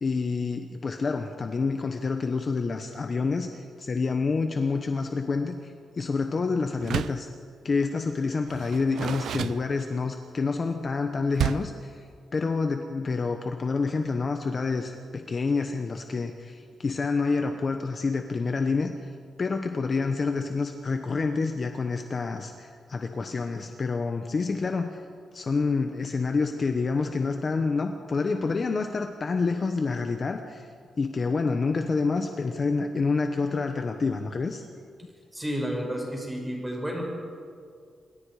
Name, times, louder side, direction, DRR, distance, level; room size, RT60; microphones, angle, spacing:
voice 1, 0.0-7.3 7.6-12.0 12.3-19.1 19.4-25.0 25.3-30.7 31.0-34.6, left 4 dB, 35° left, 6 dB, 1.1 m, -28 dB
Door, 6.8-7.3 8.5-10.2 11.3-11.8, right 9 dB, 75° right, 0.4 m, -31 dB
voice 2, 35.3-37.0, equal, 10° right, -1 dB, 5.9 m, -31 dB
26.5 x 23.5 x 4.9 m, 2.2 s
wide cardioid pair, 145°, 0 cm